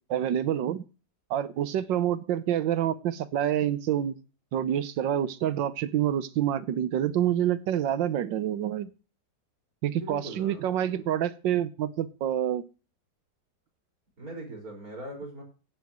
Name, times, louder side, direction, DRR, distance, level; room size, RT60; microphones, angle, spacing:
voice 1, 0.1-0.8 1.3-4.2 4.5-8.9 9.8-12.6, right 10 dB, 90° right, 14 dB, 1.5 m, -27 dB
voice 2, 9.9-11.0 14.2-15.4, right 1 dB, 50° right, 2 dB, 5.6 m, -41 dB
15.5 x 9.8 x 3.0 m, 0.34 s
omnidirectional pair, 1.9 m